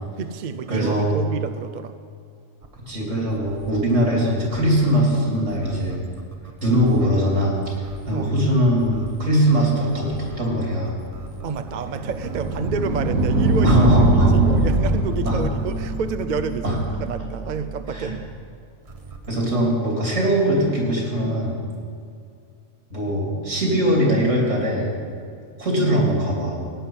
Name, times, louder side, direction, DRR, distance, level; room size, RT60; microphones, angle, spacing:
voice 1, 0.2-1.9 8.1-8.3 11.4-18.3, right 6 dB, 50° right, 9 dB, 0.5 m, -29 dB
voice 2, 0.7-1.2 2.9-6.0 6.6-7.5 8.1-10.9 13.6-14.3 15.2-15.4 16.6-16.8 17.9-18.1 19.3-21.5 22.9-24.9 25.6-26.6, equal, 70° right, -2 dB, 3.6 m, -21 dB
sound 1, 2.6-17.0 18.8-19.4, right 4 dB, 30° right, 0.9 m, -40 dB
sound 2, 11.0-17.9, right 2 dB, 90° right, 1.6 m, -22 dB
16.5 x 9.6 x 5.7 m, 2.4 s
omnidirectional pair, 1.4 m